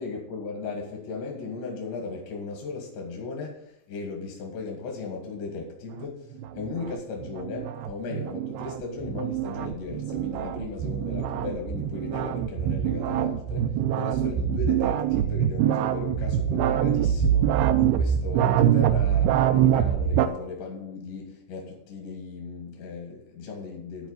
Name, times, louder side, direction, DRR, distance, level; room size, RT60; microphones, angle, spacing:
voice 1, 0.0-24.1, left 4 dB, 75° left, 0 dB, 4.0 m, -36 dB
sound 1, 6.3-20.3, right 10 dB, 80° right, 2.4 m, -24 dB
13.0 x 4.6 x 8.0 m, 0.79 s
omnidirectional pair, 5.1 m